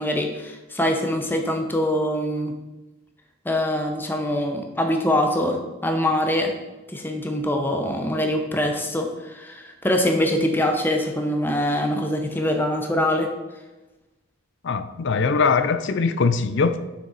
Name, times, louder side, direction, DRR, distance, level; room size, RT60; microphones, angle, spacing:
voice 1, 0.0-2.5 3.4-6.5 6.9-13.3, left 1 dB, 10° left, 3 dB, 0.9 m, -24 dB
voice 2, 14.6-16.9, left 4 dB, 60° left, 11 dB, 0.5 m, -21 dB
7.1 x 6.1 x 4.1 m, 1.1 s
head